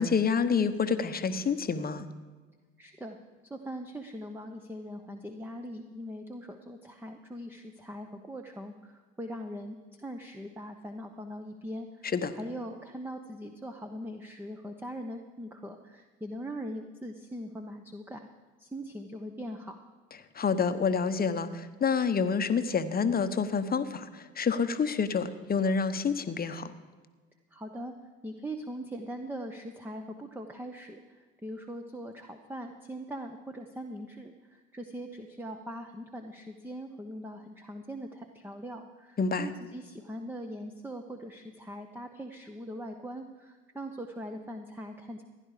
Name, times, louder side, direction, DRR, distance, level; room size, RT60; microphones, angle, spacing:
voice 1, 0.0-2.1 12.1-12.3 20.3-26.7 39.2-39.5, left 5 dB, 30° left, 11 dB, 1.0 m, -28 dB
voice 2, 2.8-3.2 3.4-18.3 18.6-19.8 27.5-27.9 28.2-45.2, equal, 5° right, 5 dB, 1.0 m, -41 dB
15.5 x 11.0 x 5.0 m, 1.3 s
hypercardioid pair, 65°, 32 cm